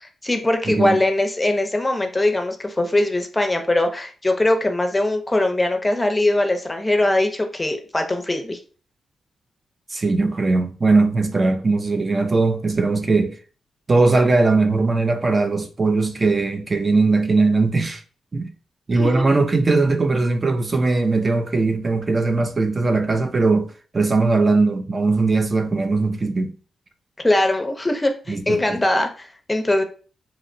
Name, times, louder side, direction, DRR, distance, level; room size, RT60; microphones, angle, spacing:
voice 1, 0.0-8.6 18.9-19.2 27.2-29.8, left 1 dB, 20° left, 0.5 m, -21 dB
voice 2, 0.7-1.0 9.9-13.4 13.9-18.0 18.3-18.5 18.9-26.5 28.3-28.8, right 3 dB, 40° right, 0.3 m, -19 dB
2.8 x 2.0 x 2.5 m
cardioid pair, 55°, 0 cm